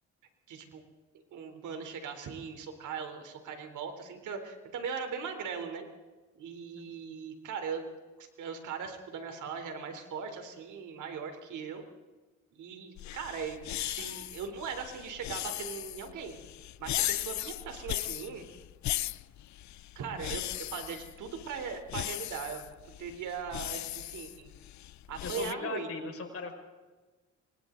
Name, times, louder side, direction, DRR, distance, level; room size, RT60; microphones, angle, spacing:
voice 1, 0.5-0.8 1.3-5.9 6.3-7.9 8.2-11.8 12.5-16.4 16.8-18.4 20.0-20.4 20.7-24.5 25.1-26.1, right 6 dB, 80° right, 6 dB, 3.9 m, -39 dB
sound 1, 13.0-25.5, left 14 dB, 65° left, 0.6 m, -38 dB
voice 2, 25.2-26.5, left 5 dB, 50° left, 2 dB, 5.9 m, -39 dB
28.0 x 24.5 x 4.0 m, 1.3 s
cardioid pair, 90°, 30 cm